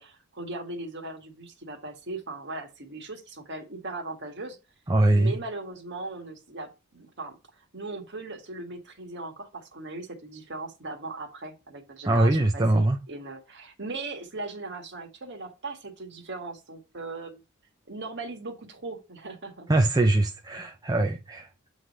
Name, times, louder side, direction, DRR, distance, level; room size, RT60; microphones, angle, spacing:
voice 1, 0.0-4.6 5.1-17.4 17.9-19.7, right 2 dB, 50° right, 1.6 m, -38 dB
voice 2, 4.9-5.4 12.0-13.0 19.7-21.5, right 2 dB, 15° right, 0.5 m, -22 dB
7.9 x 3.2 x 5.3 m
head